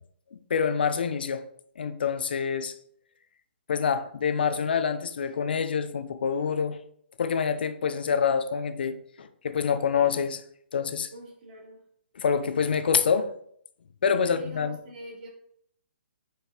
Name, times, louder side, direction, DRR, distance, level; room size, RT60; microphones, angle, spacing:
voice 1, 0.3-1.5 1.8-2.7 3.7-6.8 7.2-10.4 10.7-11.1 12.2-13.3 14.0-14.8, left 6 dB, 55° left, 0.9 m, -26 dB
voice 2, 11.1-11.8 14.2-15.3, equal, 40° right, 3.2 m, -44 dB
9.2 x 5.2 x 4.0 m
figure-of-eight pair, 130°, 6 cm